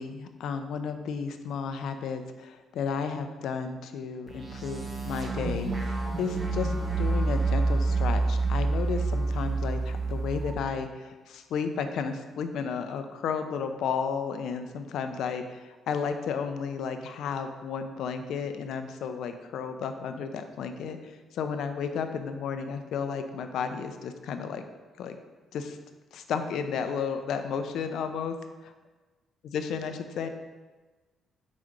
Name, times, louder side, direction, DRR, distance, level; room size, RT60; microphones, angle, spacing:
voice 1, 0.0-24.6 25.0-25.2 25.5-25.8 26.1-28.4 29.4-30.3, left 6 dB, 75° left, 7 dB, 0.5 m, -33 dB
sound 1, 4.3-10.5, right 3 dB, 30° right, 1.1 m, -28 dB
4.8 x 4.2 x 5.1 m, 1.3 s
cardioid pair, 90°, 0 cm